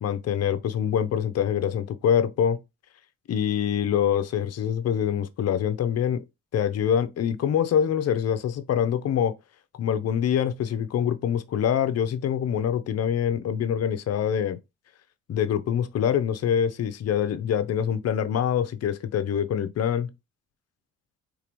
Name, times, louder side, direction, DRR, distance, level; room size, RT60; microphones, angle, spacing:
voice 1, 0.0-2.6 3.3-6.2 6.5-9.3 9.8-14.6 15.3-20.1, left 9 dB, 55° left, 0.7 m, -25 dB
3.8 x 3.3 x 3.1 m
cardioid pair, 90°, 30 cm